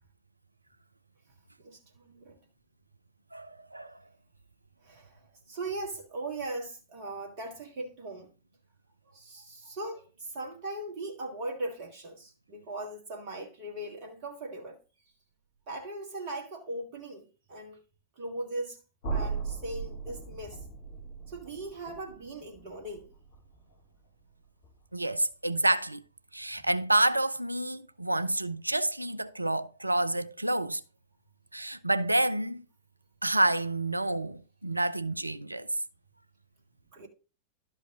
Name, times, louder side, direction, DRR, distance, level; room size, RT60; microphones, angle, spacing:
voice 1, 1.6-2.4 4.8-8.3 9.1-14.8 15.7-17.8 18.2-18.8 19.1-20.7 21.3-23.1 26.6-26.7 36.9-37.1, right 2 dB, 45° right, 1.9 m, -39 dB
voice 2, 3.3-4.0 24.9-26.0 26.3-30.8 31.5-32.6 33.2-35.7, right 1 dB, 85° right, 0.4 m, -28 dB
sound 1, 19.0-24.9, right 5 dB, 50° left, 4.1 m, -39 dB
12.0 x 5.2 x 3.7 m
figure-of-eight pair, 90°, 0 cm